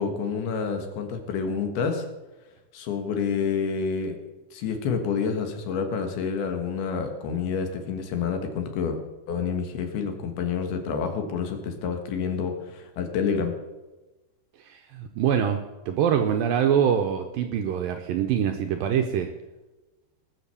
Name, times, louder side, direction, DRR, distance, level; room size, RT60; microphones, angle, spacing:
voice 1, 0.0-2.0 2.7-4.2 4.5-9.0 9.3-13.6, left 6 dB, 70° left, 5 dB, 3.3 m, -28 dB
voice 2, 14.6-19.3, right 8 dB, 80° right, 6 dB, 2.1 m, -24 dB
19.0 x 6.7 x 7.0 m, 1.1 s
omnidirectional pair, 4.8 m